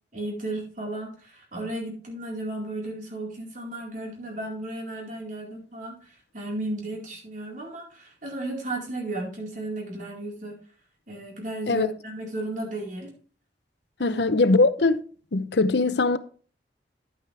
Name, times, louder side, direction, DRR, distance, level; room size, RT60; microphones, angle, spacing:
voice 1, 0.1-10.6 11.1-13.1 14.0-14.2, right 2 dB, 45° right, 4.4 m, -34 dB
voice 2, 14.0-15.0 15.3-16.2, left 3 dB, 70° left, 0.7 m, -21 dB
11.0 x 9.0 x 3.4 m
head